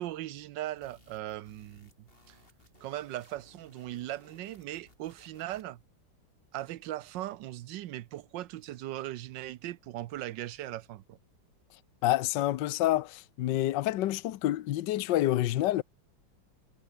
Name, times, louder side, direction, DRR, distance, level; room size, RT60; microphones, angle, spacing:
voice 1, 0.0-1.9 2.3-2.4 2.8-5.8 6.5-11.2, right 14 dB, 75° right, 1.3 m, -39 dB
sound 1, 0.8-5.8, left 1 dB, 25° left, 7.8 m, -62 dB
voice 2, 12.0-15.8, left 14 dB, 70° left, 1.4 m, -28 dB
omnidirectional pair, 2.1 m